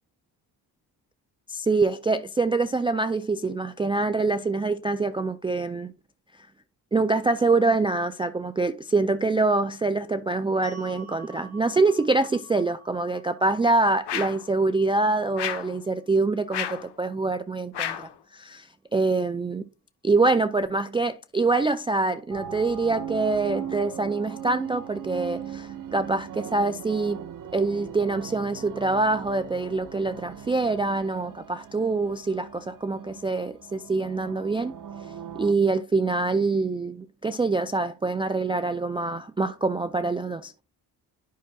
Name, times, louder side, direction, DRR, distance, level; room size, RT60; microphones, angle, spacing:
voice 1, 1.5-5.9 6.9-18.0 18.3-19.6 20.0-27.2 27.5-34.7 35.4-40.5, right 3 dB, 15° right, 0.3 m, -25 dB
sound 1, 10.6-16.8, right 3 dB, 10° left, 2.4 m, -51 dB
sound 2, 14.1-14.5 15.4-15.8 16.5-16.9 17.7-18.1, left 10 dB, 70° left, 1.1 m, -31 dB
sound 3, 22.3-35.5, right 8 dB, 50° right, 0.9 m, -39 dB
11.0 x 5.8 x 2.3 m
cardioid pair, 115°, 42 cm